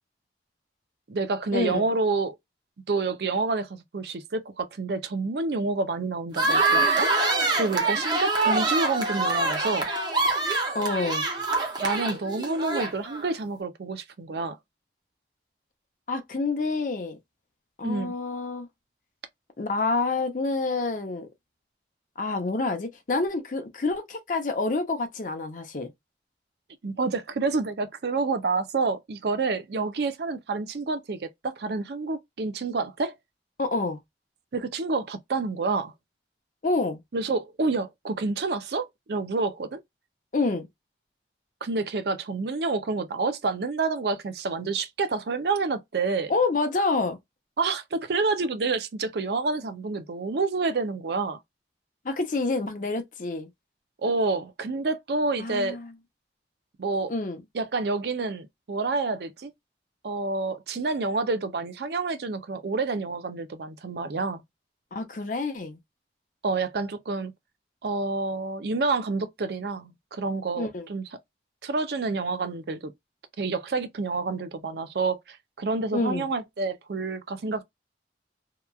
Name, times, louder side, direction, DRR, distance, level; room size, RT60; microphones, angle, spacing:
voice 1, 1.1-2.4 2.9-7.1 7.5-9.9 11.8-14.6 17.8-18.1 26.8-33.1 34.5-35.9 37.1-39.8 41.6-46.3 47.6-51.4 54.0-55.8 56.8-57.1 57.5-59.5 60.0-64.4 66.4-67.3 67.8-71.0 71.6-72.9 73.4-77.6, right 3 dB, 65° right, 0.5 m, -28 dB
sound 1, 6.3-13.3, right 3 dB, 25° right, 0.7 m, -25 dB
voice 2, 10.7-11.2 16.1-17.2 17.8-18.7 19.6-21.3 22.2-25.9 33.6-34.0 36.6-37.0 40.3-40.7 46.3-47.2 52.0-53.5 55.4-55.9 57.1-57.4 64.9-65.8 70.6-70.9 75.9-76.3, left 3 dB, 45° left, 0.6 m, -27 dB
2.9 x 2.2 x 2.3 m
head